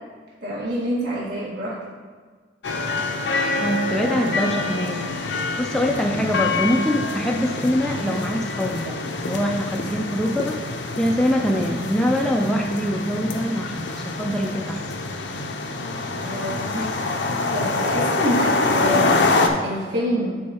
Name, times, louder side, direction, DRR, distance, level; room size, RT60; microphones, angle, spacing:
voice 1, 0.4-1.8 16.2-17.2 17.5-19.3 19.6-20.4, equal, 60° right, -7 dB, 1.6 m, -27 dB
sound 1, 2.6-19.5, left 3 dB, 65° left, 0.6 m, -25 dB
voice 2, 3.6-5.1 5.6-14.8, equal, 5° left, 1 dB, 0.4 m, -24 dB
10.5 x 4.6 x 2.9 m, 1.5 s
head